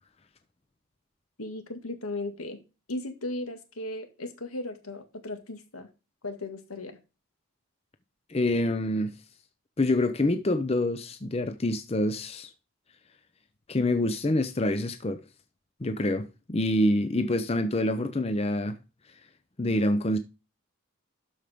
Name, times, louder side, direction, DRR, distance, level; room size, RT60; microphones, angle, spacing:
voice 1, 1.4-5.9 6.2-7.0, left 2 dB, 80° left, 2.0 m, -36 dB
voice 2, 8.3-9.1 9.8-12.5 13.7-15.2 15.8-18.8 19.6-20.2, left 1 dB, 25° left, 0.6 m, -26 dB
12.5 x 5.0 x 3.6 m
head